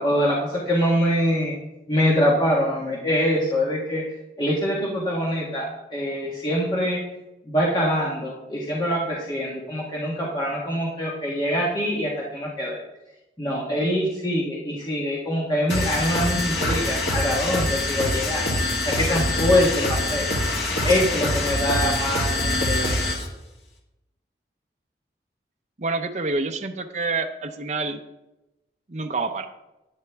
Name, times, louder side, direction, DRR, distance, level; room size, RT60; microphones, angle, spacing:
voice 1, 0.0-1.5 1.9-4.0 4.4-7.0 7.5-12.8 13.4-18.4 18.8-20.3 20.8-23.0, equal, 25° left, -5 dB, 1.5 m, -24 dB
sound 1, 15.7-23.3, left 1 dB, 70° left, 2.1 m, -24 dB
voice 2, 25.8-28.0 28.9-29.5, right 3 dB, 40° right, 4 dB, 0.6 m, -27 dB
10.5 x 10.0 x 3.5 m, 0.96 s
head